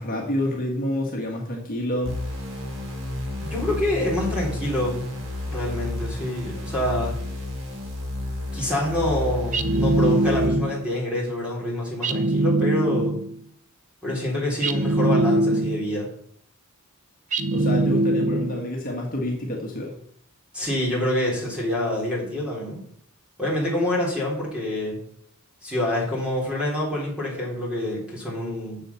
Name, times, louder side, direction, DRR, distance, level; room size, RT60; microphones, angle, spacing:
voice 1, 0.0-2.3 17.5-20.0, left 1 dB, 40° left, -1 dB, 1.8 m, -28 dB
sound 1, 2.0-10.5, left 1 dB, 65° right, 3.3 m, -31 dB
voice 2, 3.4-5.0 5.5-7.2 8.5-13.1 14.0-16.1 20.5-22.8 23.4-25.0 25.6-28.8, left 1 dB, 5° right, -4 dB, 3.8 m, -26 dB
sound 2, 9.5-10.9 12.0-13.4 14.6-16.0 17.3-18.7, right 2 dB, 35° right, 0.6 m, -22 dB
7.6 x 7.2 x 7.0 m, 0.64 s
head